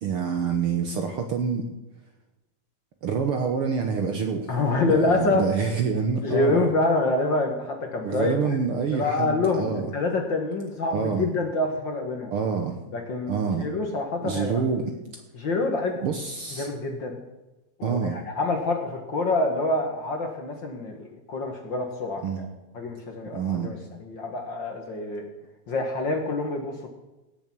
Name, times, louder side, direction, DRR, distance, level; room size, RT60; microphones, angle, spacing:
voice 1, 0.0-1.7 3.0-4.5 4.8-6.6 8.0-9.9 10.9-11.3 12.3-12.8 13.3-13.7 14.2-14.9 16.0-16.7 17.8-18.2 22.2-22.5 23.3-23.7, right 6 dB, 60° right, 5 dB, 1.5 m, -27 dB
voice 2, 4.5-5.5 6.2-8.4 8.9-12.3 12.9-14.6 15.3-16.0 16.6-17.2 17.8-22.2 22.7-25.2 25.7-26.9, left 3 dB, 45° left, 3 dB, 1.8 m, -26 dB
17.0 x 7.0 x 6.1 m, 1.1 s
omnidirectional pair, 3.4 m